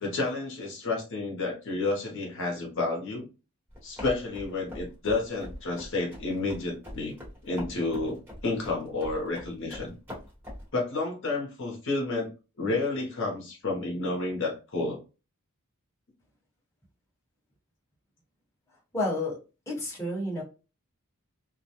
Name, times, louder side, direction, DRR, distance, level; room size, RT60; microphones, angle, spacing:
voice 1, 0.0-3.3 3.8-7.1 7.4-9.9 10.7-12.3 12.6-15.0, left 3 dB, 60° left, 0 dB, 0.7 m, -30 dB
sound 1, 3.7-10.7, left 1 dB, 10° right, 1.1 m, -43 dB
voice 2, 18.9-19.4 19.7-20.4, left 1 dB, 15° left, -4 dB, 1.0 m, -30 dB
2.3 x 2.1 x 2.8 m, 0.31 s
head